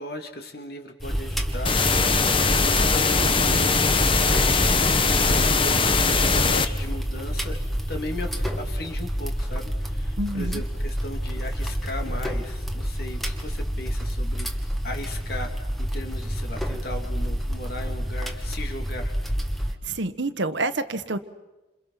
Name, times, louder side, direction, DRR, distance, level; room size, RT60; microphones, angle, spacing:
voice 1, 0.0-7.6 7.9-14.5 14.8-15.5 15.8-19.2, left 1 dB, 55° left, 4 dB, 3.1 m, -37 dB
sound 1, 1.0-19.7, equal, ahead, 1.7 m, -28 dB
sound 2, 1.7-6.7, left 4 dB, 25° left, 1.1 m, -21 dB
voice 2, 10.2-10.6 19.8-21.2, right 2 dB, 75° right, 10 dB, 1.4 m, -28 dB
29.0 x 27.5 x 5.8 m, 1.1 s
head